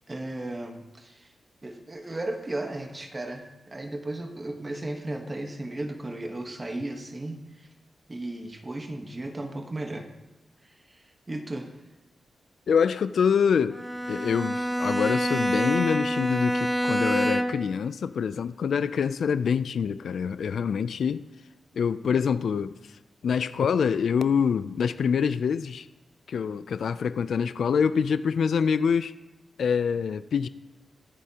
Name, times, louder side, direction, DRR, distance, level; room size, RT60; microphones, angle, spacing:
voice 1, 0.1-1.3 1.6-7.7 8.1-10.1 10.6-11.8, right 1 dB, 20° right, 1.2 m, -35 dB
voice 2, 12.7-13.8 14.1-21.2 21.7-22.7 23.2-25.9 26.3-29.1 29.6-30.5, left 6 dB, 70° left, 0.3 m, -25 dB
Bowed string instrument, 13.7-17.8, equal, 5° right, 0.5 m, -27 dB
23.0 x 8.3 x 2.9 m
wide cardioid pair, 140°, 0 cm